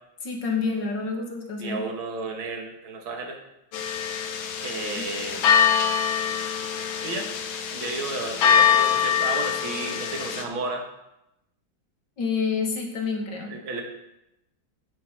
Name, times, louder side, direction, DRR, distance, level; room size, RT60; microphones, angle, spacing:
voice 1, 0.2-1.8 5.0-5.1 12.2-13.5, left 5 dB, 60° left, 2 dB, 2.1 m, -28 dB
voice 2, 1.6-3.4 4.6-5.5 7.0-7.3 7.7-10.8 13.5-13.8, right 3 dB, 80° right, 2 dB, 2.3 m, -32 dB
sound 1, 3.7-10.4, left 8 dB, 80° left, 1.8 m, -24 dB
8.7 x 6.5 x 6.6 m, 0.88 s
omnidirectional pair, 2.2 m